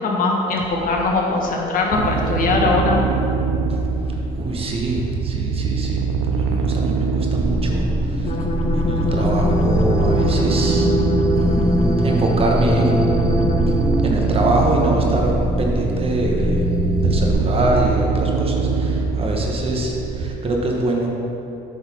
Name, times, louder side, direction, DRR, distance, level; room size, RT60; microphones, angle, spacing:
voice 1, 0.0-3.0, left 3 dB, 55° left, 0 dB, 1.3 m, -20 dB
sound 1, 1.9-20.4, right 5 dB, 85° right, 0.6 m, -23 dB
voice 2, 4.3-8.4 8.7-10.9 11.3-13.2 14.0-16.7 17.0-21.1, right 2 dB, 35° right, 0 dB, 1.2 m, -24 dB
sound 2, 7.4-17.3, right 1 dB, 5° right, 0.4 m, -22 dB
sound 3, 8.2-14.0, left 3 dB, 35° left, 0.7 m, -25 dB
7.8 x 4.3 x 5.7 m, 2.9 s
cardioid pair, 110°, 17 cm